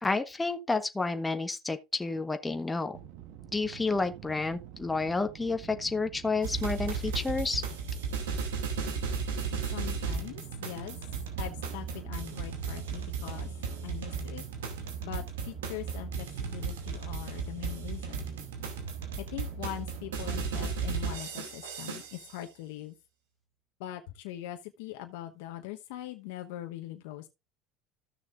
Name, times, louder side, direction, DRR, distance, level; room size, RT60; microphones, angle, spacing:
voice 1, 0.0-3.0 3.5-7.6, left 3 dB, 15° left, 1.2 m, -30 dB
sound 1, 2.9-21.0, right 11 dB, 70° right, 1.5 m, -48 dB
sound 2, 6.4-22.3, right 5 dB, 90° right, 2.4 m, -35 dB
voice 2, 9.7-11.0 11.4-13.5 13.8-14.4 14.8-18.3 19.2-22.9 23.8-27.3, left 13 dB, 80° left, 1.0 m, -42 dB
14.5 x 6.5 x 2.5 m
hypercardioid pair, 85°, 0 cm